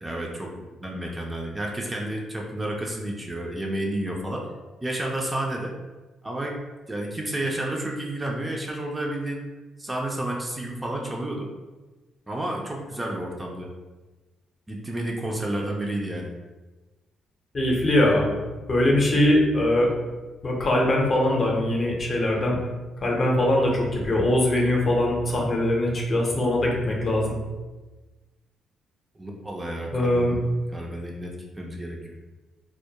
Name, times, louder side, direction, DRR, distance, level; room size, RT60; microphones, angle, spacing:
voice 1, 0.0-4.5 4.8-5.7 6.2-6.6 6.9-9.4 9.8-11.5 12.3-13.7 14.7-16.3 29.2-30.3 30.7-32.2, right 1 dB, 15° right, -1 dB, 0.3 m, -31 dB
voice 2, 17.5-18.2 18.7-20.0 20.4-22.6 23.0-27.3 29.9-30.4, left 1 dB, 40° left, -1 dB, 0.6 m, -22 dB
2.2 x 2.1 x 2.8 m, 1.2 s
cardioid pair, 90°, 0 cm